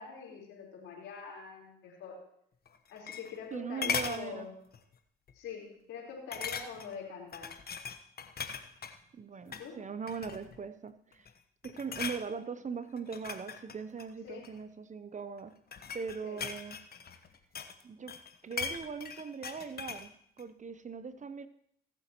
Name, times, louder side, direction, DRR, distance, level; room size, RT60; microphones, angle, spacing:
voice 1, 0.0-2.2 2.9-4.5 5.3-7.5 9.4-9.8 14.2-14.5 16.2-16.4, left 6 dB, 80° left, -2 dB, 4.1 m, -44 dB
sound 1, 2.7-3.5 3.8-4.2 4.7-5.0 5.3-5.4 6.3-7.0 7.3-9.0 9.4-9.7 10.1-10.6 11.1-11.4 11.6-12.2 13.0-14.6 15.4-17.8 18.1-20.1 20.4-20.5, left 6 dB, 50° left, 1.2 m, -39 dB
voice 2, 3.5-4.5 9.1-11.3 11.6-15.5 15.9-16.8 17.8-18.1 18.4-20.1 20.4-21.5, right 5 dB, 35° right, 13 dB, 0.7 m, -40 dB
23.0 x 7.9 x 3.0 m, 0.71 s
supercardioid pair, 55°, 20 cm